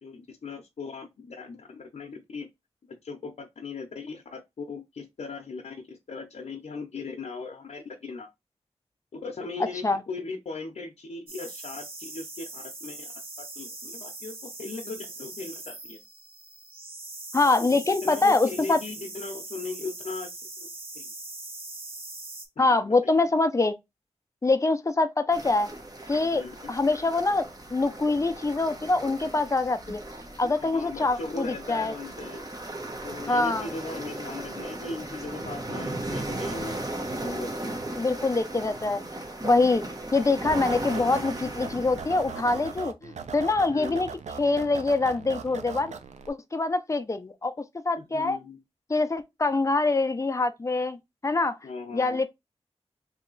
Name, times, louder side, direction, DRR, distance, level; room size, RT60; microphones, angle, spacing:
voice 1, 0.0-2.5 3.0-8.3 9.1-13.1 13.4-14.3 14.6-16.0 18.0-20.3 20.9-21.0 26.3-26.7 30.4-32.4 33.0-36.8 37.2-37.7 43.7-44.0 48.0-48.6 51.6-52.2, left 3 dB, 80° left, 0.7 m, -38 dB
voice 2, 9.6-10.0 17.3-18.8 22.6-23.8 24.4-25.7 26.1-27.4 27.7-30.0 30.4-31.9 33.3-33.7 38.0-39.0 39.4-39.8 40.1-44.1 44.4-45.9 46.3-47.5 47.8-48.4 48.9-51.6 51.9-52.3, left 3 dB, 25° left, 0.5 m, -24 dB
sound 1, 11.3-22.5, right 2 dB, 55° right, 1.1 m, -41 dB
sound 2, 25.3-42.8, right 1 dB, 35° right, 1.0 m, -37 dB
sound 3, 40.4-46.3, right 6 dB, 90° right, 0.5 m, -40 dB
3.2 x 2.8 x 3.8 m
wide cardioid pair, 75°, 12 cm